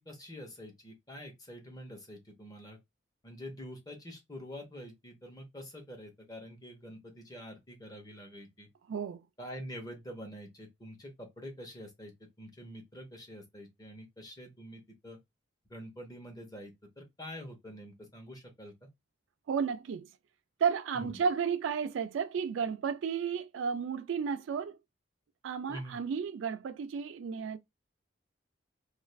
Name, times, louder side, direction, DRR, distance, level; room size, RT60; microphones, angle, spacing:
voice 1, 0.0-2.8 3.2-8.7 9.4-15.2 15.7-18.9 20.9-21.2 25.7-26.0, equal, 20° left, 0.8 m, -46 dB
voice 2, 8.9-9.2 19.5-20.1 20.6-24.8 25.4-27.6, right 6 dB, 85° right, 0.3 m, -32 dB
2.4 x 2.3 x 3.1 m
head